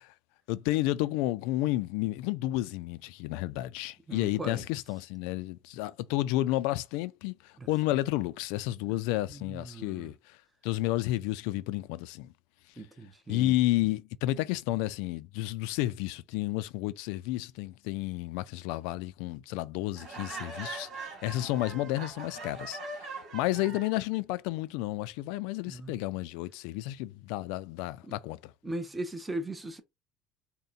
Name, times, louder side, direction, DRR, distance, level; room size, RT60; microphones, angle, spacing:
voice 1, 0.5-10.4 10.6-12.3 13.3-28.5, left 16 dB, 80° left, 0.4 m, -31 dB
voice 2, 4.1-4.6 7.6-7.7 8.9-10.1 12.8-13.5 25.7-25.9 28.0-28.2 28.6-29.8, right 2 dB, 10° right, 0.7 m, -39 dB
Laughter, 20.0-24.0, right 3 dB, 45° right, 2.0 m, -41 dB
3.7 x 2.2 x 4.0 m
cardioid pair, 145°, 0 cm